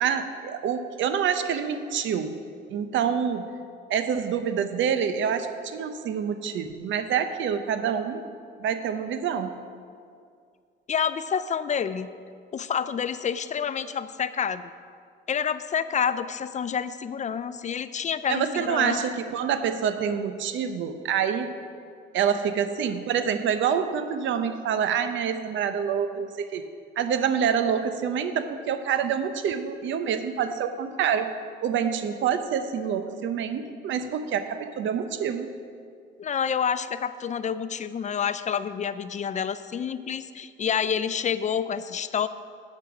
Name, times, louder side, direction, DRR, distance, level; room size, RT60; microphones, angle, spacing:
voice 1, 0.0-2.4 2.7-3.5 3.9-8.2 8.6-9.6 18.3-21.5 22.1-26.6 27.0-31.3 31.6-35.5, right 7 dB, 75° right, 9 dB, 0.7 m, -27 dB
voice 2, 10.9-12.1 12.5-14.6 15.3-19.1 36.2-42.3, left 7 dB, 35° left, 14 dB, 0.4 m, -28 dB
9.2 x 7.8 x 4.8 m, 2.3 s
cardioid pair, 90°, 20 cm